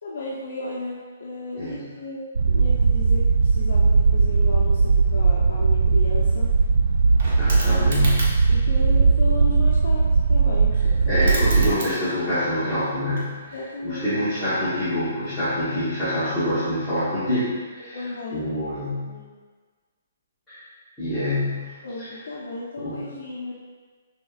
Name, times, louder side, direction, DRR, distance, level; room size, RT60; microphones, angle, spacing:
voice 1, 0.0-6.5 7.7-8.1 8.5-11.2 13.5-14.0 17.9-18.8 19.1-19.3 21.8-23.5, left 2 dB, 65° left, -5 dB, 0.8 m, -34 dB
sound 1, 2.4-11.7, right 4 dB, 85° right, 0.3 m, -19 dB
sound 2, 5.8-5.9 6.1-8.6 10.7-10.8 11.0-12.4 12.7-13.8 15.2-15.4, right 2 dB, 40° right, 0.9 m, -34 dB
voice 2, 7.4-8.3 11.1-13.4 13.8-18.1 18.3-19.1 20.5-20.6 21.0-21.7 22.0-22.1 22.8-23.0, left 1 dB, 5° left, -18 dB, 1.1 m, -26 dB
6.1 x 3.6 x 2.4 m, 1.5 s
hypercardioid pair, 175°, 0 cm